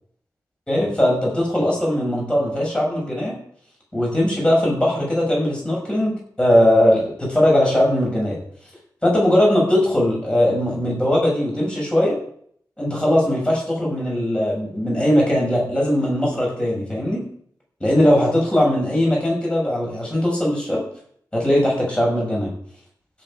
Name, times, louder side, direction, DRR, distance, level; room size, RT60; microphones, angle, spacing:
voice 1, 0.7-3.4 3.9-8.4 9.0-12.2 12.8-17.2 17.8-20.8 21.3-22.5, left 1 dB, 15° left, -3 dB, 6.3 m, -19 dB
16.0 x 7.6 x 4.9 m, 0.62 s
wide cardioid pair, 140°, 7 cm